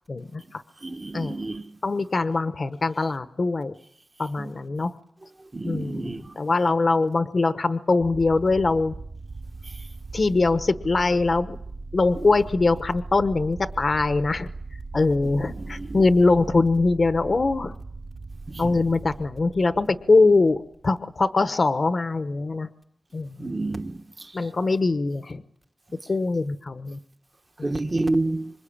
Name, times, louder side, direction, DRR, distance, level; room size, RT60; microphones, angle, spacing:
voice 1, 0.1-0.6 1.1-1.4 1.8-3.7 4.2-4.9 5.6-8.9 10.1-11.6 11.9-14.5 14.9-17.8 18.6-22.7 23.1-23.5 24.3-25.4 26.1-27.0 27.6-27.7, left 3 dB, 45° left, 1.0 m, -22 dB
voice 2, 0.8-1.6 5.5-6.3 15.8-15.9 18.5-18.6 23.4-24.0 27.6-28.5, right 2 dB, 30° right, 1.1 m, -28 dB
sound 1, 8.0-21.0, right 3 dB, 65° right, 3.1 m, -39 dB
26.5 x 24.5 x 8.7 m
wide cardioid pair, 130°, 0 cm